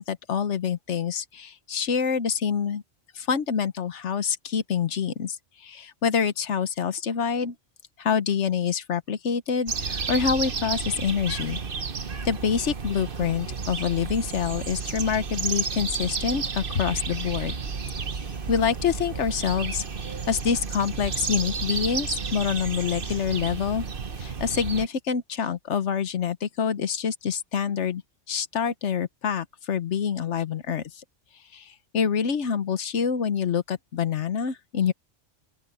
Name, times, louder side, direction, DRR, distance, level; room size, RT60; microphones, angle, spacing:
voice 1, 0.0-2.8 3.1-7.5 8.0-11.6 12.2-17.5 18.5-19.8 20.3-23.8 24.2-28.0 28.3-31.0 31.5-34.9, left 7 dB, 70° left, 1.3 m, -26 dB
sound 1, 9.7-24.9, right 5 dB, 50° right, 1.3 m, -32 dB
open air
omnidirectional pair, 1.2 m